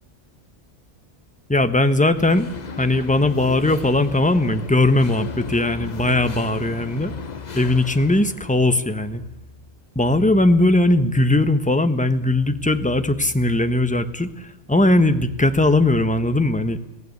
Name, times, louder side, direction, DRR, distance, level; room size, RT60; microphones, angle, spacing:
voice 1, 1.5-2.5 2.8-7.1 7.5-9.2 9.9-16.8, left 2 dB, 5° left, 9 dB, 1.0 m, -19 dB
sound 1, 2.2-9.3, left 5 dB, 40° left, 1.0 m, -35 dB
22.0 x 16.0 x 9.6 m, 0.99 s
omnidirectional pair, 1.3 m